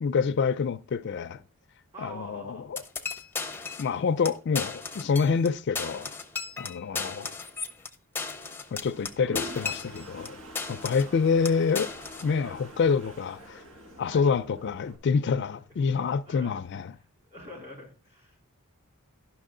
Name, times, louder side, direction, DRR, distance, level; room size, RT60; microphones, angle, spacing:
voice 1, 0.0-1.4 2.0-2.8 3.8-6.1 6.6-7.3 8.7-10.4 10.7-11.9 12.2-13.6 14.0-16.9, left 5 dB, 55° left, 0.4 m, -27 dB
voice 2, 1.9-2.9 6.9-7.2 11.0-11.4 12.4-12.6 14.1-14.3 16.2-16.6 17.3-18.5, equal, 30° right, 3.1 m, -46 dB
sound 1, 2.8-3.9 4.2-4.3 4.5-5.5 5.7-10.3 10.6-11.1 11.4-12.3, left 4 dB, 10° left, 0.6 m, -35 dB
Toilet flush, 8.8-15.0, left 1 dB, 80° right, 1.5 m, -44 dB
11.0 x 6.0 x 3.7 m
head